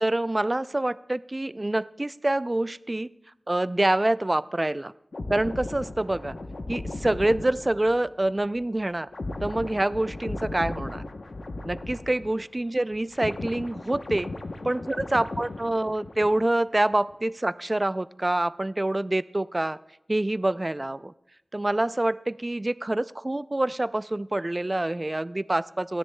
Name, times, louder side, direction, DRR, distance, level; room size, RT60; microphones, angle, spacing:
voice 1, 0.0-3.1 3.5-4.9 5.3-6.3 6.7-9.1 9.4-11.0 11.6-14.3 14.6-19.8 20.1-21.1 21.5-26.0, right 1 dB, 30° right, 16 dB, 0.3 m, -26 dB
sound 1, 5.1-12.6 12.9-16.6 16.9-17.1, left 2 dB, 70° left, 0.8 m, -37 dB
29.5 x 10.0 x 2.2 m, 0.83 s
wide cardioid pair, 65°, 0 cm